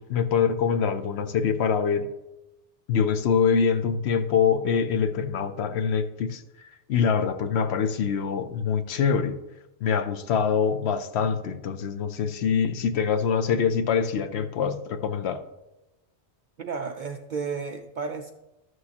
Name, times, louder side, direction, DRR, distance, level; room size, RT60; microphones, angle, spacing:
voice 1, 0.0-2.1 2.9-6.4 6.9-9.4 9.8-15.4, left 6 dB, 70° left, 0.9 m, -24 dB
voice 2, 16.6-18.3, right 5 dB, 60° right, 0.5 m, -32 dB
13.0 x 6.4 x 2.8 m
omnidirectional pair, 1.2 m